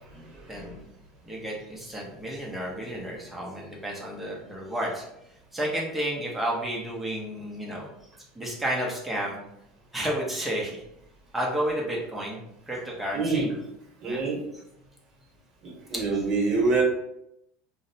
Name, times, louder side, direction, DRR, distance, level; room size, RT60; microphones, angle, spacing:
voice 1, 0.1-0.7 13.1-13.5 14.0-14.4 15.6-16.8, right 3 dB, 40° right, -2 dB, 1.0 m, -26 dB
voice 2, 1.2-5.0 5.5-7.9 8.3-9.4 9.9-10.8 11.3-12.4 12.7-13.5 14.0-14.2 15.9-16.0, right 1 dB, 5° right, -3 dB, 0.6 m, -31 dB
2.6 x 2.0 x 2.6 m, 0.80 s
supercardioid pair, 135°, 2 cm